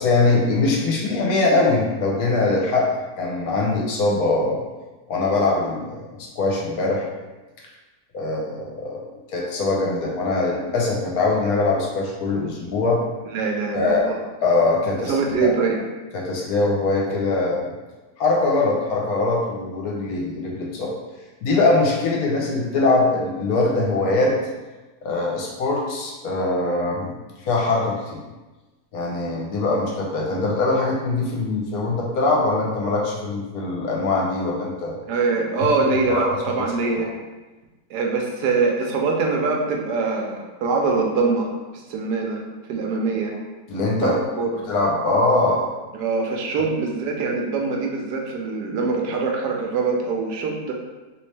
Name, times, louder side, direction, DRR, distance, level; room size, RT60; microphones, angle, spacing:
voice 1, 0.0-2.9 3.2-4.6 5.1-7.1 8.1-9.0 9.3-13.0 13.7-14.1 14.4-15.5 16.1-17.7 18.2-20.9 21.4-24.3 25.0-28.2 28.9-35.0 36.1-36.3 36.8-37.1 43.7-44.2 44.7-45.7, left 3 dB, 70° left, -2 dB, 1.1 m, -22 dB
voice 2, 13.3-14.2 15.1-15.8 35.1-37.1 37.9-41.5 41.7-42.4 42.7-43.3 43.9-44.7 45.9-50.7, right 4 dB, 80° right, 1 dB, 1.2 m, -23 dB
3.1 x 2.9 x 3.2 m, 1.2 s
omnidirectional pair, 1.8 m